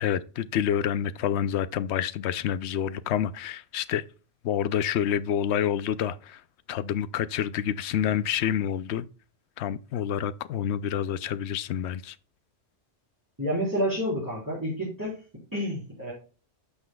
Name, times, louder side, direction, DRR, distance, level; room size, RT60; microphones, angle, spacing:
voice 1, 0.0-4.0 4.4-6.4 6.7-9.1 9.6-12.2, left 9 dB, 70° left, 0.8 m, -28 dB
voice 2, 13.4-15.2 15.5-16.1, equal, 15° right, 3.9 m, -29 dB
12.0 x 5.6 x 2.3 m
omnidirectional pair, 1.2 m